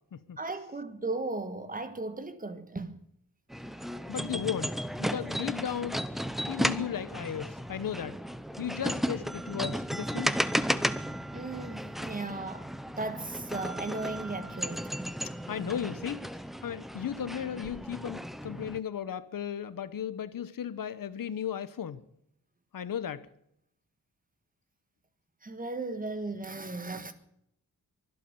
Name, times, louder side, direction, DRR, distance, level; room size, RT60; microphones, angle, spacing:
voice 1, 0.4-3.0 11.3-15.2 25.4-27.1, right 2 dB, 25° right, 1.5 m, -36 dB
sound 1, 3.5-18.8, equal, ahead, 0.6 m, -34 dB
voice 2, 4.1-6.0 6.5-8.2 8.6-10.4 15.5-16.3 16.6-22.0 22.7-23.3, left 9 dB, 70° left, 1.1 m, -35 dB
24.0 x 8.4 x 6.9 m
wide cardioid pair, 165°, 34 cm